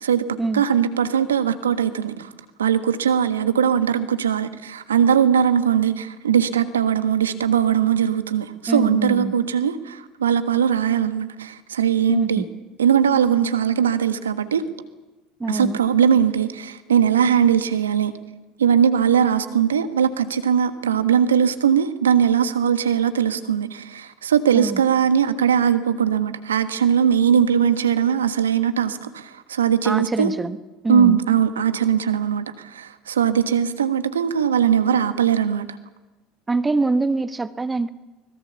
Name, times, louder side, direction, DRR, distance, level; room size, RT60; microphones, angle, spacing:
voice 1, 0.5-2.3 2.6-12.4 12.8-14.6 15.5-18.1 18.6-30.3 30.9-35.7, right 8 dB, 80° right, 1.4 m, -20 dB
voice 2, 8.7-9.3 12.1-12.5 15.4-15.8 24.5-24.8 29.8-30.6 30.8-31.2 36.5-37.9, right 3 dB, 20° right, 1.3 m, -24 dB
24.0 x 21.0 x 7.1 m
figure-of-eight pair, 65°, 0 cm